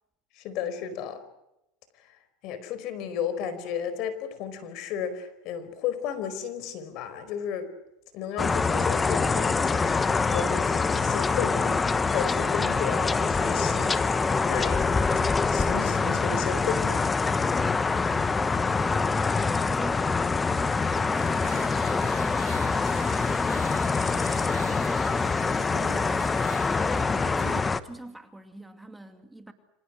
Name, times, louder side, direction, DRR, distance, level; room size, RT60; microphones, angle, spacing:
voice 1, 0.4-1.2 2.0-2.1 2.4-7.7 8.1-11.8 12.1-15.0 15.5-17.1, left 8 dB, 55° left, 12 dB, 4.8 m, -33 dB
sound 1, 8.4-27.8, left 4 dB, 20° left, 1.1 m, -25 dB
voice 2, 17.9-29.5, right 2 dB, 5° right, 7 dB, 2.4 m, -44 dB
sound 2, 20.3-27.8, right 14 dB, 85° right, 2.4 m, -46 dB
27.5 x 26.5 x 6.3 m, 0.86 s
supercardioid pair, 115°, 0 cm